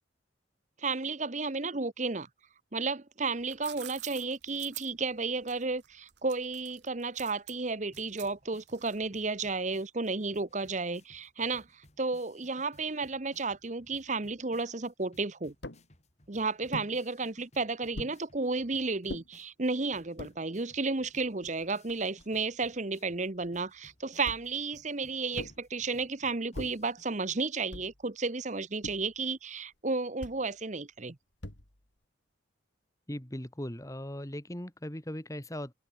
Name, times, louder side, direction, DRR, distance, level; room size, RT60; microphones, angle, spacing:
voice 1, 0.8-2.3 2.7-15.5 16.3-31.2, right 3 dB, 40° right, 1.0 m, -33 dB
sound 1, 3.2-9.2, right 15 dB, 60° right, 1.2 m, -48 dB
sound 2, 7.9-27.1, left 1 dB, 35° left, 4.7 m, -62 dB
sound 3, 15.6-15.9 16.7-16.9 17.9-18.2 19.1-19.3 20.0-20.4 21.1-21.2 21.4-22.4 24.2-24.6 25.3-25.7 26.5-26.9 27.7-28.1 28.8-29.2 30.2-30.5 31.4-31.9, left 1 dB, 65° left, 3.2 m, -42 dB
voice 2, 33.1-35.7, left 1 dB, 15° left, 1.9 m, -39 dB
head